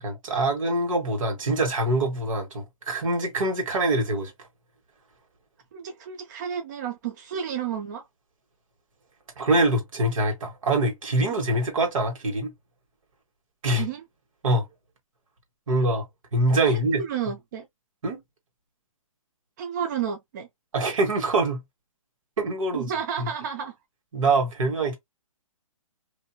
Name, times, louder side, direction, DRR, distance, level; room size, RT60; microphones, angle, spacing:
voice 1, 0.0-4.3 9.4-12.5 13.6-13.8 14.4-14.6 15.7-16.1 16.3-17.0 18.0-18.2 20.7-21.6 22.4-22.9 23.2-23.3 24.1-25.0, right 2 dB, 70° right, 1.4 m, -24 dB
voice 2, 5.7-8.0 13.7-14.0 16.7-17.7 19.6-20.5 22.7-23.8, right 8 dB, 35° right, 0.4 m, -31 dB
2.6 x 2.3 x 2.8 m
hypercardioid pair, 160°, 18 cm